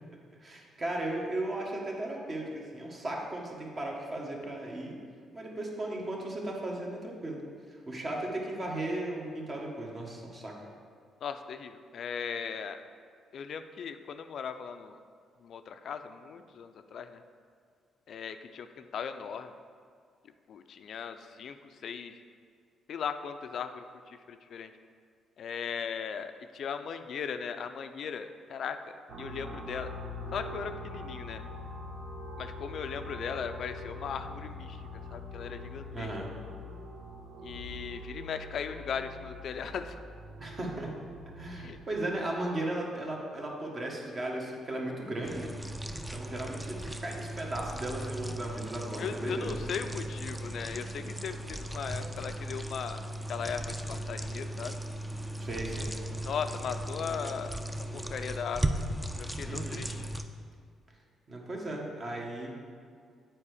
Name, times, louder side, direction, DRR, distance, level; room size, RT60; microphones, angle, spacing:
voice 1, 0.4-5.0 5.3-7.4 7.7-10.5 35.9-36.3 40.4-40.9 41.2-45.5 46.1-49.5 55.4-55.9 59.4-59.8 61.3-62.5, right 1 dB, 40° right, -1 dB, 1.4 m, -36 dB
voice 2, 11.2-12.8 13.3-15.0 15.4-17.2 18.1-19.5 20.5-22.2 22.9-24.7 25.4-28.8 29.2-29.9 30.3-31.4 32.4-34.8 35.1-36.1 37.4-40.0 41.6-41.8 49.0-53.0 53.3-54.7 56.2-57.5 57.9-58.9 59.2-60.1, left 7 dB, 65° left, 8 dB, 0.4 m, -38 dB
sound 1, 29.1-41.8, left 2 dB, 80° right, 0.9 m, -43 dB
sound 2, 45.2-60.2, right 1 dB, 10° right, 0.5 m, -37 dB
7.4 x 4.6 x 4.9 m, 2.1 s
cardioid pair, 90°, 0 cm